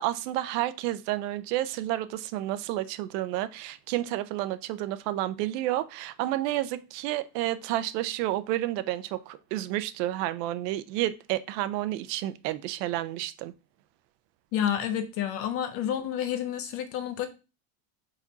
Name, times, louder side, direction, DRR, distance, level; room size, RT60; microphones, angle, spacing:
voice 1, 0.0-13.5, right 14 dB, 75° right, 13 dB, 0.8 m, -30 dB
voice 2, 14.5-17.3, left 10 dB, 35° left, 9 dB, 0.4 m, -29 dB
5.0 x 4.3 x 5.2 m, 0.29 s
cardioid pair, 170°, 49 cm